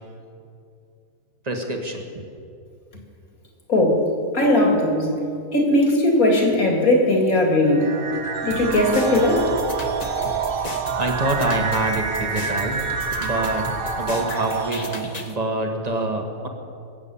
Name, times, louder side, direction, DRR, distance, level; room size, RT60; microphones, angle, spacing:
voice 1, 1.4-2.2 11.0-12.8 13.2-13.7 14.0-16.5, right 2 dB, 30° right, 3 dB, 1.6 m, -26 dB
voice 2, 3.7-4.1 4.3-5.1 5.5-7.9 8.4-9.5, left 1 dB, 80° left, 1 dB, 3.0 m, -18 dB
sound 1, 7.7-15.3, right 5 dB, 45° right, 1.1 m, -28 dB
sound 2, 8.5-15.3, left 2 dB, 30° left, 1.1 m, -35 dB
23.5 x 8.3 x 7.1 m, 2.5 s
omnidirectional pair, 1.5 m